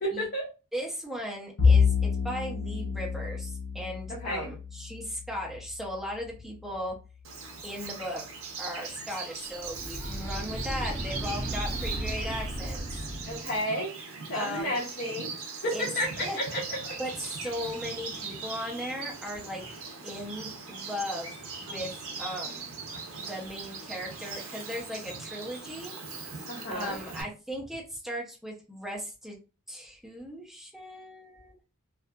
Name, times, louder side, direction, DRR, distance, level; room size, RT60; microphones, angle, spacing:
voice 1, 0.0-0.5 4.1-4.5 13.3-13.9 14.3-15.3 15.6-17.0 26.5-27.0, equal, 45° left, -4 dB, 0.6 m, -32 dB
voice 2, 0.7-6.9 7.6-8.2 8.6-12.9 14.3-14.8 15.7-15.8 16.2-16.4 17.0-19.6 20.0-22.7 23.3-25.9 26.3-26.4 26.7-29.4 29.7-31.6, equal, ahead, -2 dB, 0.6 m, -37 dB
Bowed string instrument, 1.6-6.2, left 5 dB, 80° left, 0.8 m, -27 dB
Bird vocalization bird call bird song, 7.2-27.2, right 4 dB, 65° right, 0.6 m, -40 dB
sound 1, 9.5-13.5, right 1 dB, 50° right, 0.9 m, -35 dB
2.6 x 2.4 x 2.2 m, 0.31 s
head